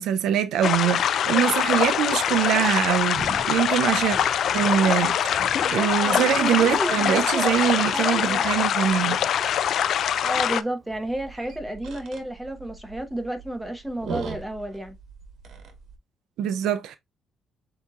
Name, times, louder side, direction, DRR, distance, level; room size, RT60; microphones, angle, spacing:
voice 1, 0.0-4.2 4.5-5.2 5.7-9.3 16.4-17.0, right 10 dB, 85° right, 0.4 m, -23 dB
sound 1, 0.6-10.6, left 9 dB, 65° left, 0.3 m, -23 dB
Thunder, 0.6-11.6, right 3 dB, 25° right, 3.0 m, -46 dB
voice 2, 5.6-7.6 7.9-8.7 10.2-14.9, right 1 dB, 5° right, 1.2 m, -32 dB
sound 2, 10.9-16.0, right 4 dB, 65° right, 1.3 m, -39 dB
7.1 x 2.9 x 2.4 m
cardioid pair, 100°, 0 cm